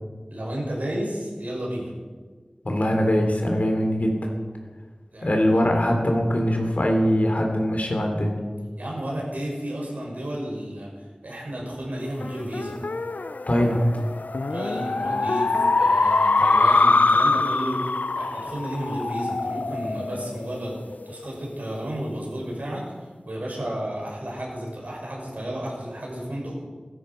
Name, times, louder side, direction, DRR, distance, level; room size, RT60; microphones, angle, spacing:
voice 1, 0.3-1.9 5.1-5.5 8.8-10.9 11.2-12.8 14.5-17.8 18.2-20.8 21.1-22.9 23.3-26.5, right 1 dB, 75° right, -3 dB, 5.7 m, -32 dB
voice 2, 2.6-4.3 5.2-8.4 13.5-13.9, equal, 65° left, 2 dB, 3.2 m, -22 dB
sound 1, 12.2-21.0, left 3 dB, 85° left, 0.5 m, -23 dB
16.5 x 12.5 x 5.5 m, 1.5 s
wide cardioid pair, 40°, 3 cm